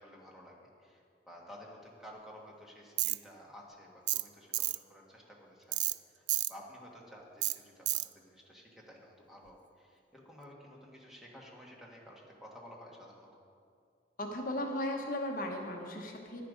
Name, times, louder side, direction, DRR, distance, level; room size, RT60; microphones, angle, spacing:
voice 1, 0.0-13.3, equal, ahead, -3 dB, 1.5 m, -53 dB
Tools, 3.0-3.2 4.1-4.3 4.5-4.8 5.7-6.0 6.3-6.5 7.4-7.6 7.9-8.1, right 16 dB, 75° right, 0.3 m, -31 dB
voice 2, 14.2-16.4, left 1 dB, 50° left, 2 dB, 1.0 m, -36 dB
11.0 x 10.0 x 5.1 m, 2.3 s
head